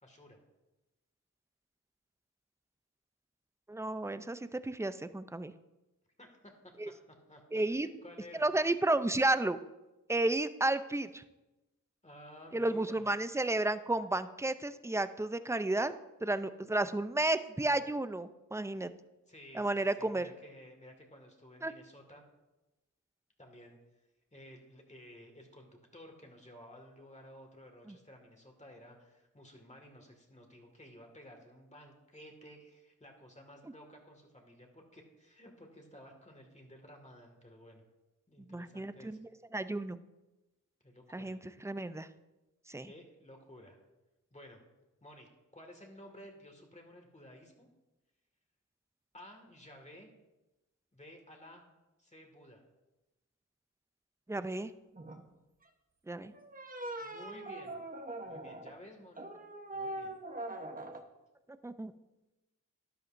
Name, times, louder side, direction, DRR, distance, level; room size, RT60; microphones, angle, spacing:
voice 1, 0.0-0.4 6.2-8.5 12.0-13.1 19.3-22.2 23.4-23.8 24.3-37.8 38.3-39.2 40.8-41.4 42.8-43.8 44.3-44.6 45.0-47.7 49.1-50.1 50.9-51.7 52.0-52.6 57.0-57.8 58.2-59.3 59.7-60.2, equal, 20° left, 2 dB, 2.0 m, -54 dB
voice 2, 3.7-5.5 6.8-6.9 7.5-7.9 8.4-9.6 10.1-11.2 12.5-15.9 16.2-18.9 19.5-20.3 21.6-21.7 27.9-28.0 38.5-40.0 41.1-42.1 42.7-42.9 54.3-54.7 56.1-56.3 61.6-61.9, right 2 dB, 10° right, 12 dB, 0.4 m, -32 dB
sound 1, 54.9-55.3 56.3-58.8 59.2-61.0, right 1 dB, 25° right, 1.0 m, -42 dB
13.0 x 11.0 x 2.6 m, 1.0 s
wide cardioid pair, 60°, 32 cm